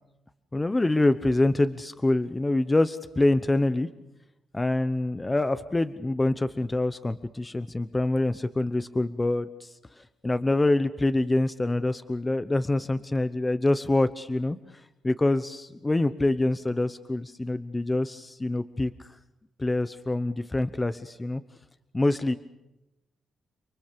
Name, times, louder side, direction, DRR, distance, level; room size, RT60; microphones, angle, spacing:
voice 1, 0.5-3.9 4.5-14.6 15.0-19.1 19.6-21.4 21.9-22.4, left 2 dB, 15° left, 12 dB, 0.9 m, -25 dB
30.0 x 24.0 x 6.9 m, 0.90 s
wide cardioid pair, 150°, 0 cm